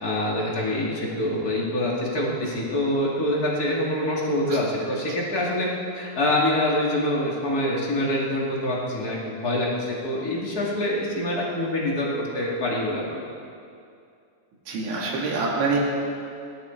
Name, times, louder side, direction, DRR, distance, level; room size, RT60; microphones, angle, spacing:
voice 1, 0.0-5.7 5.9-13.0, left 1 dB, 40° left, -4 dB, 1.4 m, -25 dB
voice 2, 14.7-15.8, right 4 dB, 80° right, -3 dB, 4.8 m, -26 dB
21.0 x 12.5 x 4.5 m, 2.4 s
omnidirectional pair, 5.2 m